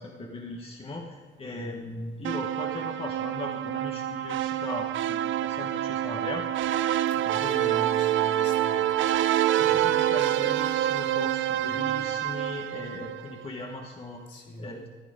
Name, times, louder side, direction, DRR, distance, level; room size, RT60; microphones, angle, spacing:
voice 1, 0.0-6.5 7.4-8.1 9.6-14.2 14.6-14.9, left 2 dB, 30° left, 0 dB, 1.3 m, -38 dB
voice 2, 1.4-1.9 7.1-8.8 9.6-9.9 11.6-12.0 14.3-14.7, equal, 65° left, -3 dB, 3.5 m, -43 dB
sound 1, 2.2-13.5, right 12 dB, 75° right, 0.5 m, -27 dB
14.5 x 9.5 x 5.0 m, 1.4 s
cardioid pair, 90°, 20 cm